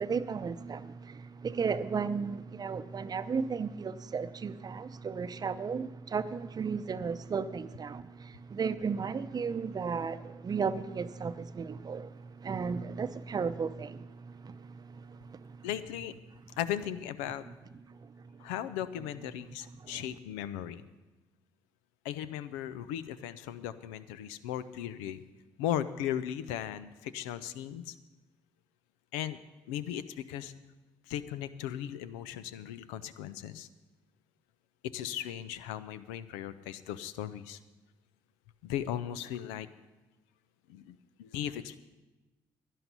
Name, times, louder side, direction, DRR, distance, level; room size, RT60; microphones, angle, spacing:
voice 1, 0.0-8.0 8.5-12.1 12.4-14.0 14.4-14.6, right 5 dB, 40° right, 0.6 m, -34 dB
voice 2, 15.6-16.2 16.6-17.4 18.4-20.9 22.0-25.2 25.6-27.9 29.1-29.4 29.7-30.5 31.1-33.7 34.8-37.6 38.6-39.7 40.7-41.8, left 11 dB, 85° left, 0.5 m, -37 dB
11.0 x 11.0 x 5.5 m
hypercardioid pair, 55°, 10 cm